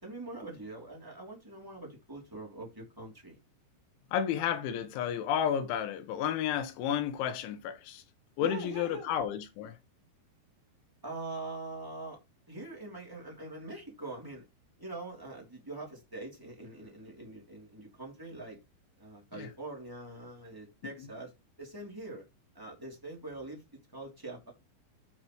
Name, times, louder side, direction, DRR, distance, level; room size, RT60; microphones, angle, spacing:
voice 1, 0.0-3.4 8.4-9.1 11.0-12.2 12.5-14.4 14.8-18.6 19.0-21.3 21.6-22.2 22.5-23.6 23.9-24.5, right 2 dB, 15° right, 0.7 m, -43 dB
voice 2, 4.1-8.0 8.4-9.7 19.3-19.5, left 9 dB, 80° left, 3.2 m, -32 dB
12.5 x 4.3 x 2.9 m
omnidirectional pair, 5.6 m